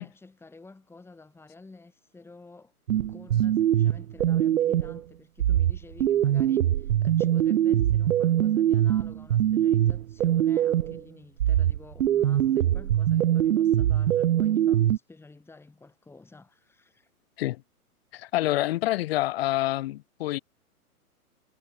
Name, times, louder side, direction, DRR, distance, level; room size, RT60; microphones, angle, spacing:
voice 1, 0.0-2.7 3.1-17.1, left 3 dB, 5° left, 4.6 m, -50 dB
sound 1, 2.9-5.0 5.4-11.0 11.4-15.0, right 11 dB, 65° right, 0.6 m, -23 dB
voice 2, 18.1-20.4, left 16 dB, 40° left, 2.1 m, -27 dB
figure-of-eight pair, 125°, 45 cm